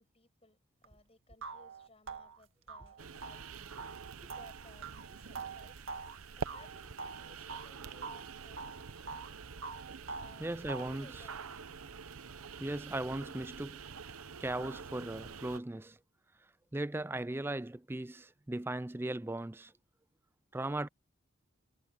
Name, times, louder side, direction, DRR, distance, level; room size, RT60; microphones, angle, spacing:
voice 1, 0.0-9.2 10.1-11.5, left 2 dB, 30° left, 8.0 m, -62 dB
sound 1, 0.8-0.9 1.4-7.7 8.0-9.3 9.6-11.0, right 4 dB, 70° right, 1.8 m, -45 dB
sound 2, 3.0-15.6, right 5 dB, 85° right, 0.9 m, -47 dB
voice 2, 10.4-11.1 12.6-13.8 14.4-16.0 16.7-19.7 20.5-20.9, right 1 dB, 10° right, 0.3 m, -37 dB
head